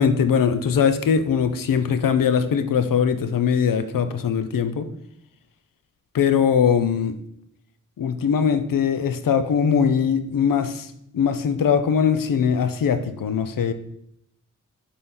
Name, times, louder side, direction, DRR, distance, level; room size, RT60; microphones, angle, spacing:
voice 1, 0.0-4.9 6.1-7.2 8.0-10.9 11.1-13.7, left 7 dB, 90° left, 10 dB, 0.7 m, -21 dB
7.7 x 4.3 x 3.8 m, 0.76 s
wide cardioid pair, 125°, 32 cm